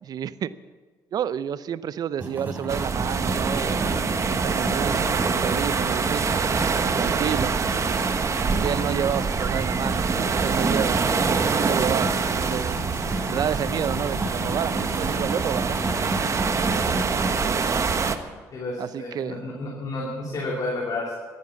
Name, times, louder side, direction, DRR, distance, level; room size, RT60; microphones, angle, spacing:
voice 1, 0.0-0.5 1.1-3.9 4.4-6.2 6.9-7.6 8.5-11.1 11.5-12.8 13.3-15.8 18.8-19.4, right 9 dB, 60° right, 16 dB, 0.6 m, -30 dB
sound 1, 2.2-17.3, right 1 dB, 25° right, 3.8 m, -32 dB
sound 2, 2.7-18.2, right 5 dB, 45° right, 1.1 m, -25 dB
voice 2, 18.5-21.2, left 2 dB, 55° left, -2 dB, 2.9 m, -31 dB
14.0 x 10.5 x 7.3 m, 1.4 s
supercardioid pair, 70°, 7 cm